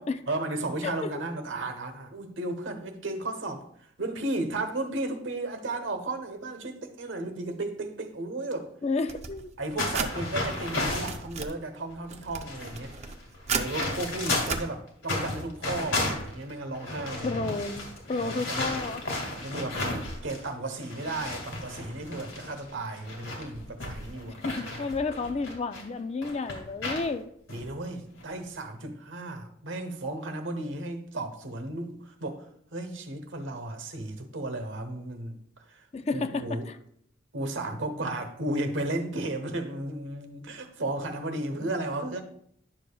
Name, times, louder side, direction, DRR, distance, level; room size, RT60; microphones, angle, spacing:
voice 1, 0.3-8.7 9.6-12.9 13.5-17.5 18.2-18.8 19.4-19.8 20.2-24.9 27.5-35.4 35.7-35.9 36.1-36.7 37.3-42.2, right 2 dB, 75° right, 1.0 m, -34 dB
voice 2, 0.8-1.2 8.8-9.5 17.2-19.0 24.4-27.3 35.9-36.8, left 3 dB, 30° left, 0.3 m, -31 dB
sound 1, 9.1-10.1 10.7-11.5 12.0-13.9 14.4-14.6, right 5 dB, 35° right, 0.5 m, -34 dB
sound 2, 9.8-11.2 11.9-12.0 12.2-14.7 15.0-20.5 20.8-25.8 26.2-27.1 27.5-27.7 28.2-28.5, left 2 dB, 80° left, 2.1 m, -34 dB
10.5 x 6.8 x 2.3 m
head